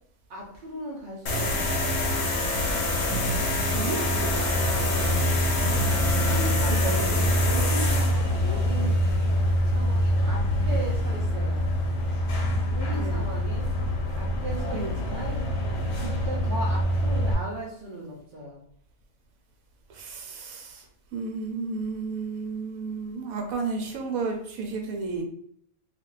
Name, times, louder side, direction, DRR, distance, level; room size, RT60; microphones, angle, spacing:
voice 1, 0.3-2.0 3.6-5.4 6.2-9.0 9.6-11.7 12.7-13.7 14.1-15.3 16.0-18.6, right 1 dB, 50° right, -3 dB, 0.6 m, -37 dB
sound 1, 1.3-17.3, left 1 dB, 60° left, 0.9 m, -25 dB
voice 2, 6.7-7.4 12.9-13.3 14.7-15.0 19.9-20.9 21.1-25.2, right 4 dB, 85° right, 3 dB, 1.1 m, -32 dB
2.5 x 2.4 x 3.0 m, 0.65 s
omnidirectional pair, 1.5 m